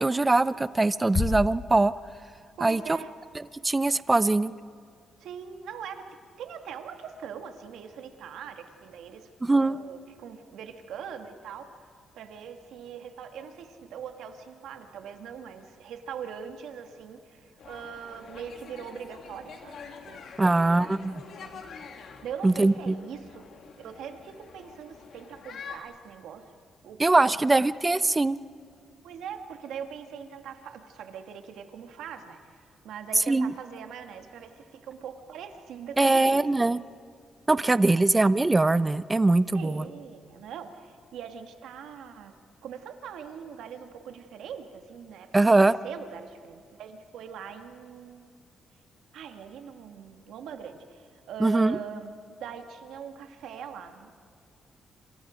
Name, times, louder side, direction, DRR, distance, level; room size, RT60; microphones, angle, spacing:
voice 1, 0.0-1.9 2.6-2.8 3.6-4.5 9.4-9.8 20.4-21.2 22.4-22.9 27.0-28.4 33.3-33.5 36.0-36.8 37.5-39.8 45.3-45.8 51.4-51.8, right 2 dB, 20° right, 16 dB, 0.6 m, -22 dB
sound 1, 1.1-2.8, left 5 dB, 40° left, 0.5 m, -32 dB
voice 2, 2.6-3.1 5.2-9.3 9.6-11.8 12.1-19.8 20.1-21.6 22.2-23.5 23.8-26.4 26.8-27.3 29.0-36.7 37.9-38.0 39.5-42.3 42.6-48.3 49.1-54.1, right 7 dB, 85° right, 6 dB, 1.7 m, -42 dB
sound 2, 17.6-25.8, left 6 dB, 65° left, 2.4 m, -46 dB
27.0 x 27.0 x 5.1 m, 2.2 s
cardioid pair, 100°, 0 cm